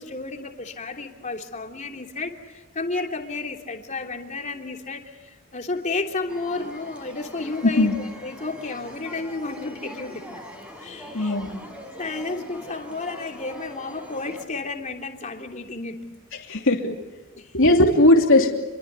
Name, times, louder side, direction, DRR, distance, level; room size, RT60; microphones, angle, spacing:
voice 1, 0.0-10.2 10.8-11.3 12.0-16.0 17.3-17.5, left 3 dB, 35° left, 3 dB, 3.2 m, -32 dB
sound 1, 6.3-14.5, equal, 5° right, 5.5 m, -42 dB
voice 2, 7.6-7.9 11.1-11.7 16.5-16.9 17.5-18.5, left 1 dB, 65° left, 1 dB, 3.0 m, -18 dB
29.0 x 23.5 x 8.2 m, 1.1 s
head